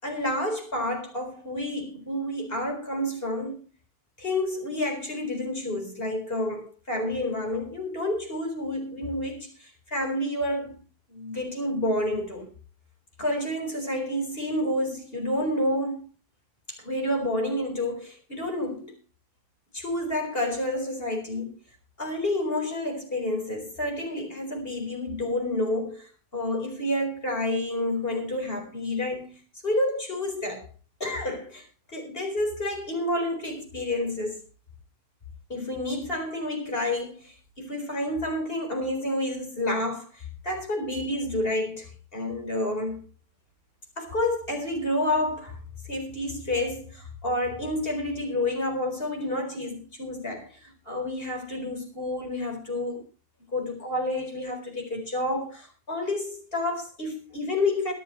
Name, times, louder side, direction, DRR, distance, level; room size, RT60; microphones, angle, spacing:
voice 1, 0.0-3.6 4.2-10.8 11.1-12.5 13.2-16.0 16.7-18.9 19.7-21.5 22.0-29.4 29.6-30.7 31.0-31.6 31.9-34.4 35.5-43.0 44.0-45.6 45.8-53.0 53.5-57.9, left 1 dB, 65° left, 4.6 m, -29 dB
23.5 x 9.2 x 3.1 m
omnidirectional pair, 1.1 m